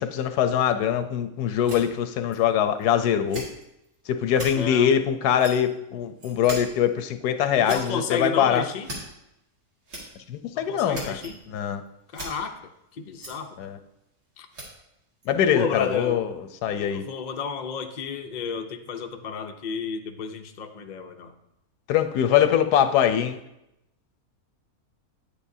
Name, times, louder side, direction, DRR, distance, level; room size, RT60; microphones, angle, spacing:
voice 1, 0.0-3.4 4.1-8.6 10.3-11.2 11.5-11.8 13.6-13.8 15.3-16.3 16.6-17.0 21.9-23.4, left 9 dB, 90° left, 10 dB, 1.2 m, -23 dB
sound 1, 1.6-2.4 2.8-2.9 3.3-4.0 4.3-4.5 5.4-5.7 6.2-6.6 6.9-7.0 7.4-7.8 8.3-8.4 8.8-9.1 9.8-10.0 10.6-11.3 11.6-11.7 11.9-12.3 13.2-13.3 14.5-14.7 15.2-15.3, right 1 dB, 90° right, 2.5 m, -37 dB
voice 2, 4.5-4.9 7.6-8.9 10.5-11.4 12.1-12.6 12.9-13.6 14.4-14.5 15.5-16.2 16.7-21.3, left 6 dB, 65° left, 5 dB, 0.4 m, -32 dB
9.1 x 8.4 x 2.7 m, 0.86 s
omnidirectional pair, 1.6 m